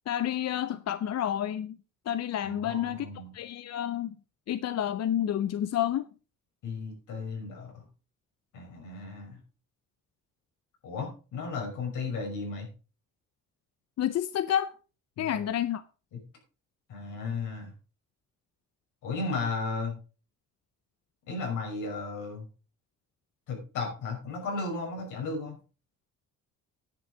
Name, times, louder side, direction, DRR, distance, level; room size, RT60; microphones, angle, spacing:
voice 1, 0.1-1.8 2.1-3.1 3.3-4.1 4.5-6.1 14.0-14.7 15.2-15.8, left 10 dB, 60° left, 0.7 m, -29 dB
voice 2, 2.4-3.3 6.6-7.8 8.5-9.4 10.8-12.7 15.2-15.4 16.1-16.2 16.9-17.7 19.0-19.9 21.3-22.4 23.5-25.6, left 4 dB, 85° left, 5.8 m, -35 dB
10.0 x 8.1 x 5.0 m
cardioid pair, 90°, 30 cm